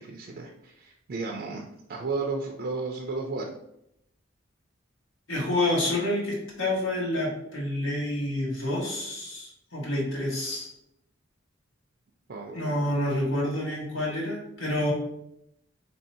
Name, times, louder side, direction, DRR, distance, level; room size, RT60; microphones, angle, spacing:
voice 1, 0.0-3.5 12.3-12.8, right 3 dB, 50° right, 0 dB, 0.4 m, -34 dB
voice 2, 5.3-10.7 12.5-14.9, left 1 dB, 85° left, -3 dB, 1.3 m, -28 dB
3.0 x 2.6 x 4.1 m, 0.80 s
head